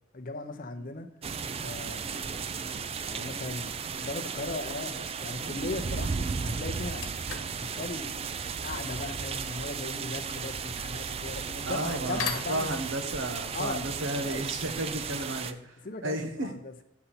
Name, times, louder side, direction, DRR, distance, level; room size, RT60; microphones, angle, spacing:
voice 1, 0.1-1.1 1.5-2.5 3.1-7.0 7.6-8.2 8.6-12.8 13.5-13.8 14.2-14.5 15.8-16.8, left 2 dB, 45° left, 7 dB, 0.7 m, -38 dB
sound 1, 1.2-15.5, right 6 dB, 30° right, 0.3 m, -35 dB
sound 2, 6.9-15.3, left 6 dB, 85° left, 1.2 m, -43 dB
voice 2, 11.6-15.8 16.0-16.5, right 1 dB, 75° right, 6 dB, 1.1 m, -33 dB
8.3 x 6.7 x 4.3 m, 0.81 s
head